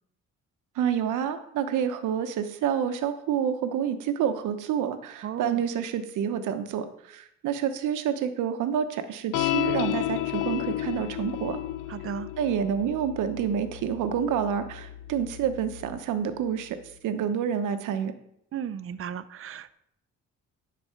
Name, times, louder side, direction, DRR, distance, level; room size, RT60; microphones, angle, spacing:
voice 1, 0.8-11.6 12.4-16.8 17.0-18.1, right 8 dB, 85° right, 9 dB, 0.9 m, -28 dB
voice 2, 5.2-5.6 11.9-12.3 18.5-19.7, right 8 dB, 45° right, 14 dB, 0.6 m, -35 dB
sound 1, 9.3-16.0, left 15 dB, 85° left, 0.5 m, -32 dB
11.0 x 4.2 x 5.7 m, 0.75 s
cardioid pair, 90°, 30 cm